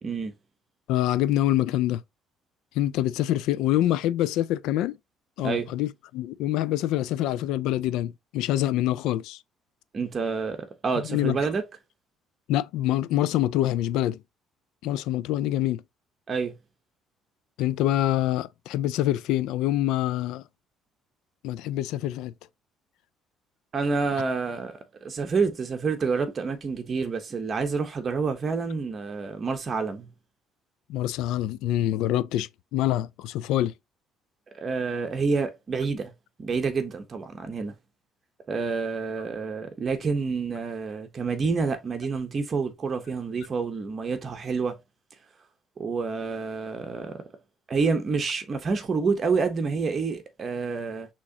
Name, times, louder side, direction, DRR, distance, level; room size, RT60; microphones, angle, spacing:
voice 1, 0.0-0.3 5.4-5.7 9.9-11.6 16.3-16.6 23.7-30.1 34.5-36.1 36.4-37.7 38.5-44.8 45.8-47.2 47.7-51.1, right 4 dB, 30° right, 0.8 m, -28 dB
voice 2, 0.9-2.0 2.8-5.0 5.4-9.4 10.9-11.4 12.5-14.2 14.8-15.8 17.6-20.4 21.4-22.3 30.9-33.7, left 13 dB, 80° left, 0.3 m, -25 dB
6.2 x 3.0 x 2.7 m
cardioid pair, 155°, 0 cm